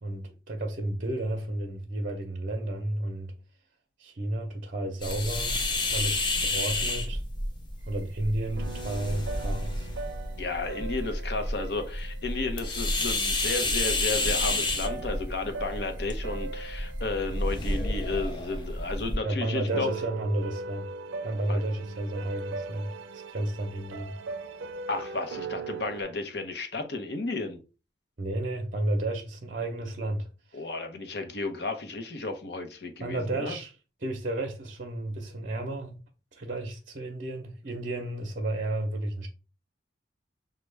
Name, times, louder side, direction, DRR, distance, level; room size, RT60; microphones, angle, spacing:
voice 1, 0.0-3.3 4.0-7.2 7.9-9.9 19.2-20.9 21.2-24.1 28.2-30.6 33.0-33.7 34.0-36.0 36.3-39.3, right 1 dB, 45° right, 0.7 m, -32 dB
sound 1, 5.0-19.2, left 2 dB, 25° left, 0.5 m, -30 dB
sound 2, 8.6-13.0 14.1-18.3 19.7-26.0, right 4 dB, 85° right, 0.4 m, -40 dB
voice 2, 10.4-19.9 21.5-21.6 24.9-27.6 30.5-33.6, left 3 dB, 60° left, 0.7 m, -33 dB
6.2 x 2.2 x 3.3 m
head